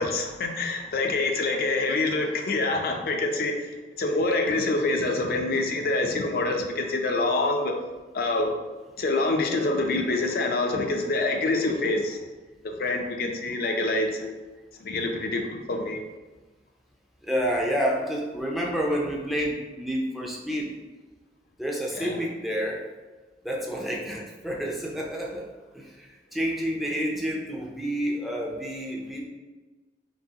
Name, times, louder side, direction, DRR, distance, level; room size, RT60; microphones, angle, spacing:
voice 1, 0.0-3.7 4.0-7.8 8.1-8.5 9.0-12.2 12.6-14.4 14.8-16.0 22.0-22.2, left 2 dB, 55° left, 3 dB, 0.4 m, -26 dB
voice 2, 17.2-20.7 21.6-22.8 23.4-25.4 25.7-29.3, equal, ahead, -2 dB, 0.5 m, -29 dB
5.3 x 2.8 x 2.8 m, 1.3 s
head